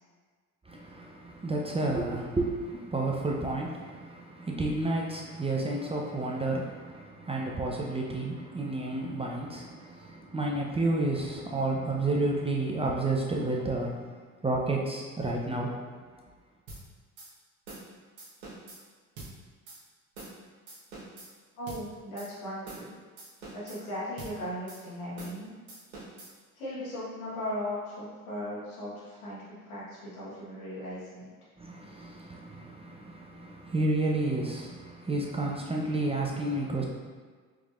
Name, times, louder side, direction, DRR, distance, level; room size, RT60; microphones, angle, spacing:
voice 1, 0.7-14.1 14.4-15.7 31.6-36.8, right 2 dB, 15° right, -2 dB, 0.6 m, -31 dB
sound 1, 16.7-16.8 17.2-17.3 17.7-17.9 18.2-18.8 19.2-19.3 19.7-19.8 20.2-20.4 20.7-21.3 21.7-21.8 22.2-22.3 22.7-22.9 23.2-23.8 24.2-24.3 24.7-24.8 25.2-25.4 25.7-26.3, right 2 dB, 85° right, 1.3 m, -44 dB
voice 2, 21.6-22.9 23.5-25.5 26.5-31.3, left 1 dB, 90° left, -8 dB, 1.5 m, -37 dB
4.6 x 3.4 x 2.5 m, 1.5 s
hypercardioid pair, 65°, 41 cm